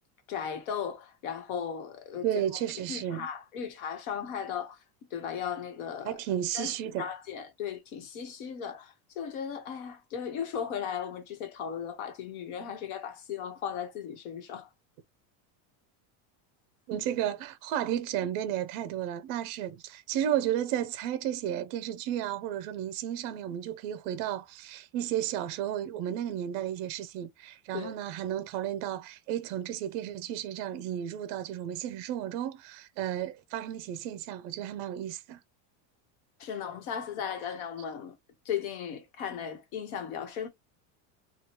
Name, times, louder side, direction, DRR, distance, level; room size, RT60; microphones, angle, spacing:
voice 1, 0.3-2.4 2.9-4.8 5.1-6.2 6.5-6.7 7.0-14.7 27.7-27.9 36.4-38.1 38.4-40.5, left 8 dB, 80° left, 1.2 m, -36 dB
voice 2, 2.2-3.3 6.0-7.1 16.9-35.4, right 11 dB, 55° right, 0.5 m, -33 dB
3.0 x 2.3 x 2.9 m
cardioid pair, 155°, 42 cm